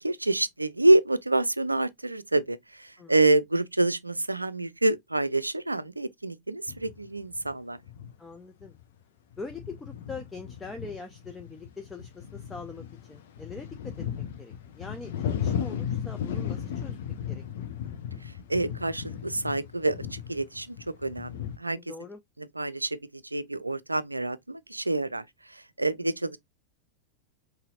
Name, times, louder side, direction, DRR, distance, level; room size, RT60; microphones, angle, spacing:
voice 1, 0.0-7.8 18.2-20.8 21.0-21.8 22.4-26.4, right 2 dB, 85° right, 0.4 m, -27 dB
sound 1, 6.7-7.0 7.4-7.5 7.9-8.3 8.6-8.8 9.3-21.6, left 9 dB, 55° left, 0.7 m, -36 dB
voice 2, 8.2-8.8 9.4-13.9 14.4-15.1 15.4-17.0 17.3-17.4 21.7-22.2, left 3 dB, 10° left, 0.5 m, -42 dB
5.6 x 2.7 x 2.3 m
figure-of-eight pair, 90°, 0 cm